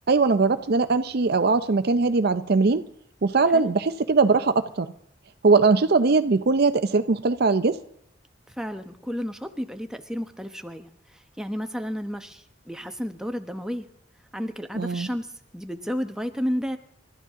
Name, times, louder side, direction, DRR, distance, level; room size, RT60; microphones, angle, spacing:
voice 1, 0.1-2.8 3.2-4.9 5.4-7.8 14.8-15.1, right 4 dB, 55° right, 10 dB, 0.6 m, -21 dB
voice 2, 8.5-13.9 14.3-16.8, equal, 5° right, 6 dB, 1.0 m, -32 dB
29.0 x 13.0 x 3.7 m, 0.73 s
head